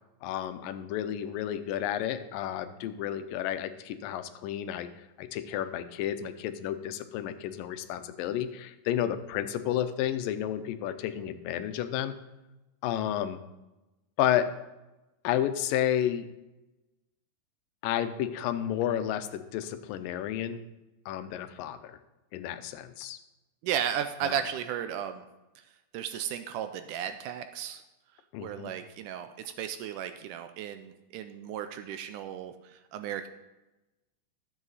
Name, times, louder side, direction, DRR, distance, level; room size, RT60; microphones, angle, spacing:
voice 1, 0.2-4.9 5.2-12.1 12.8-13.4 14.2-14.5 15.2-16.3 17.8-20.6 21.1-22.0 22.3-23.2 24.2-24.4 28.3-28.7, left 11 dB, 85° left, 10 dB, 2.4 m, -31 dB
voice 2, 23.6-25.2 25.9-27.8 28.4-29.3 29.6-32.5 32.9-33.3, right 9 dB, 80° right, 9 dB, 2.0 m, -34 dB
12.5 x 7.4 x 4.0 m, 1.0 s
omnidirectional pair, 3.9 m